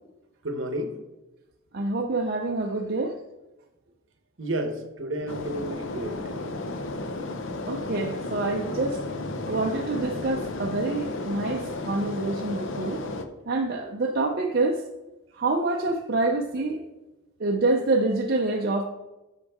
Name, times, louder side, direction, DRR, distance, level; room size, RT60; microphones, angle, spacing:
voice 1, 0.4-1.0 4.4-6.3, right 1 dB, 65° right, 6 dB, 1.1 m, -31 dB
voice 2, 1.7-3.2 7.6-9.0 9.5-13.0 13.5-14.8 15.4-16.8 17.4-18.8, right 2 dB, 45° right, 1 dB, 0.6 m, -26 dB
sound 1, 5.3-13.3, left 2 dB, 65° left, 0.7 m, -33 dB
9.8 x 6.4 x 3.6 m, 1.0 s
head